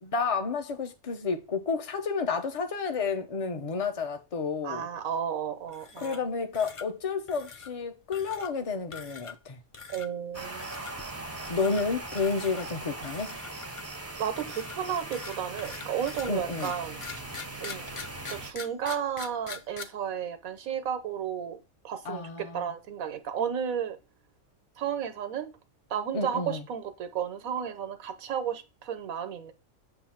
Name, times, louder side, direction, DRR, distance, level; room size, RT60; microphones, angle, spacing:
voice 1, 0.0-4.9 6.0-9.6 11.5-13.3 16.3-16.7 22.1-22.7 26.1-26.6, left 4 dB, 30° left, 0.7 m, -31 dB
voice 2, 4.6-6.2 9.9-10.8 14.2-17.0 17.6-17.9 18.3-21.6 21.8-24.0 24.8-25.5 25.9-29.5, right 8 dB, 85° right, 1.3 m, -33 dB
sound 1, 5.7-6.3 6.5-6.9 7.3-7.7 8.1-8.5 8.9-9.5 9.7-10.1 10.6-10.9 11.4-11.8 12.2-12.6 13.0-14.0 14.4-19.8, left 5 dB, 55° left, 0.3 m, -43 dB
sound 2, 10.3-18.5, right 2 dB, 15° right, 0.5 m, -40 dB
7.7 x 2.6 x 5.7 m
omnidirectional pair, 1.4 m